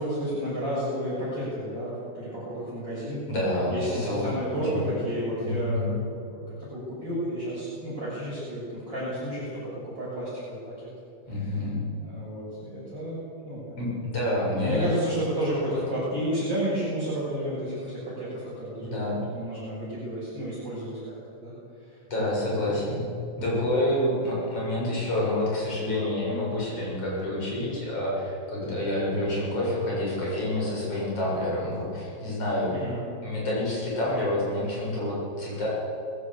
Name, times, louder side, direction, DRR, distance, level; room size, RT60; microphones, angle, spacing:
voice 1, 0.0-3.2 3.7-6.4 6.7-10.9 12.0-13.9 14.5-19.0 19.3-21.0 21.3-21.5 21.9-22.0 22.3-22.9 23.9-24.0 32.7-33.0, equal, 25° right, -9 dB, 7.5 m, -32 dB
voice 2, 3.3-4.9 5.4-6.0 11.3-11.9 13.8-14.9 18.8-19.2 22.1-23.0 23.4-32.7 33.2-35.7, left 1 dB, 35° left, -6 dB, 8.4 m, -28 dB
21.0 x 15.5 x 8.4 m, 2.5 s
omnidirectional pair, 4.9 m